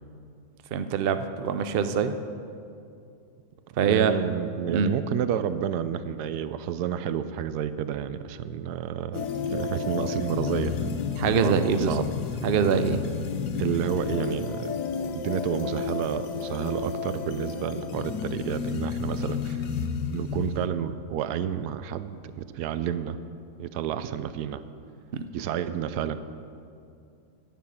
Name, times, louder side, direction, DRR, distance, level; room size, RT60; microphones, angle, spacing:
voice 1, 0.7-2.1 3.8-4.1 4.7-5.0 11.2-11.9 12.4-13.0 25.1-25.2, right 7 dB, 60° right, 9 dB, 0.6 m, -24 dB
voice 2, 3.9-9.2 9.5-10.8 11.4-12.0 13.6-14.8 15.1-19.6 20.1-23.2 23.6-24.6 25.3-26.2, right 9 dB, 80° right, 12 dB, 1.1 m, -30 dB
sound 1, 9.1-20.7, left 6 dB, 90° left, 1.4 m, -31 dB
11.0 x 7.5 x 8.7 m, 2.5 s
omnidirectional pair, 1.7 m